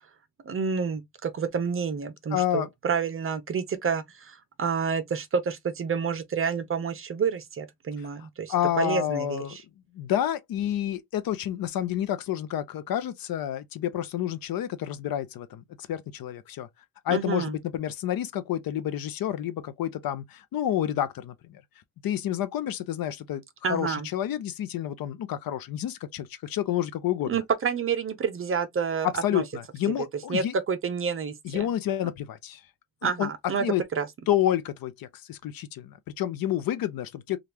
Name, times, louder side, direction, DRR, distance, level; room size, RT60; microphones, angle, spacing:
voice 1, 0.5-9.6 17.1-17.6 23.6-24.1 27.2-29.4 30.3-31.7 33.0-33.6 33.9-34.1, right 6 dB, 30° right, 0.5 m, -29 dB
voice 2, 2.3-2.7 8.5-9.6 9.9-15.6 15.9-16.7 17.0-21.3 22.0-23.4 23.7-27.3 29.2-30.5 31.4-32.6 33.0-33.3 33.6-33.8 34.3-37.4, left 11 dB, 55° left, 0.6 m, -29 dB
3.3 x 2.4 x 2.8 m
cardioid pair, 145°, 42 cm